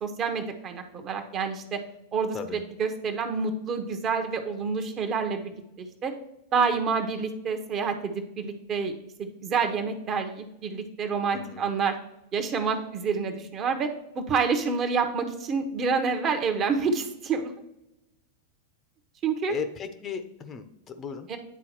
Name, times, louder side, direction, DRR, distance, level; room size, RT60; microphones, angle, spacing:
voice 1, 0.0-1.8 2.1-6.1 6.5-8.9 9.2-11.9 12.3-13.9 14.1-17.5 19.2-19.6 21.3-21.4, right 5 dB, 35° right, 5 dB, 0.9 m, -28 dB
voice 2, 11.3-11.7 19.5-21.3, left 6 dB, 30° left, 8 dB, 0.6 m, -36 dB
10.0 x 3.8 x 2.9 m, 0.88 s
figure-of-eight pair, 95°, 0 cm